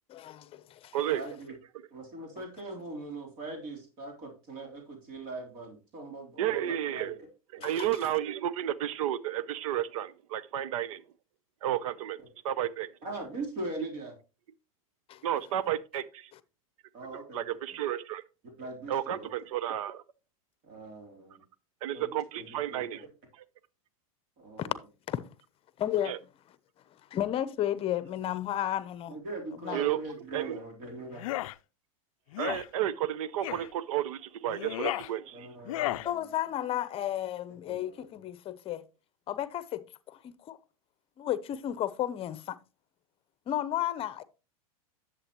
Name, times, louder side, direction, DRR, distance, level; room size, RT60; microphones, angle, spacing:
voice 1, 0.1-1.0 7.6-7.9 15.1-15.2 24.6-24.7 25.1-25.3 25.8-26.2 27.1-29.2 29.6-29.8 36.0-38.8 39.3-40.6 41.2-42.6 43.5-44.2, left 12 dB, 30° left, 0.8 m, -33 dB
voice 2, 1.1-1.5 1.9-7.3 7.6-7.8 13.0-14.1 16.9-17.4 18.6-19.3 20.6-21.4 21.9-23.1 24.4-24.8 29.1-31.3 35.3-36.2 37.7-38.0, right 2 dB, 50° right, 3.4 m, -41 dB
voice 3, 6.4-7.2 7.5-11.0 11.6-12.2 12.4-12.9 15.2-16.3 17.1-18.2 18.9-20.0 21.8-23.1 23.3-23.4 26.0-26.2 29.7-30.0 30.3-30.6 32.4-35.5, right 11 dB, 70° right, 0.7 m, -32 dB
sound 1, 31.1-31.5 32.3-32.7 33.4-33.7 34.5-35.1 35.6-36.1, left 16 dB, 65° left, 0.4 m, -33 dB
11.0 x 7.5 x 3.0 m
hypercardioid pair, 110°, 18 cm